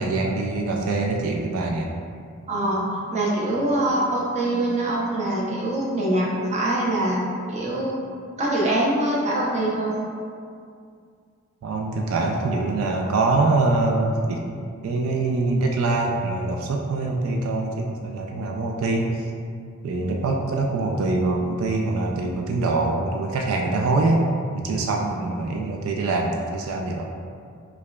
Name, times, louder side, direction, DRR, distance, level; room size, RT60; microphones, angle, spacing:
voice 1, 0.0-1.9 11.6-14.4 14.8-19.3 19.8-24.2 24.5-27.1, right 3 dB, 85° right, 1 dB, 0.3 m, -24 dB
voice 2, 2.5-8.0 8.4-10.0, right 1 dB, 35° right, -5 dB, 0.6 m, -24 dB
4.7 x 2.3 x 2.2 m, 2.3 s
head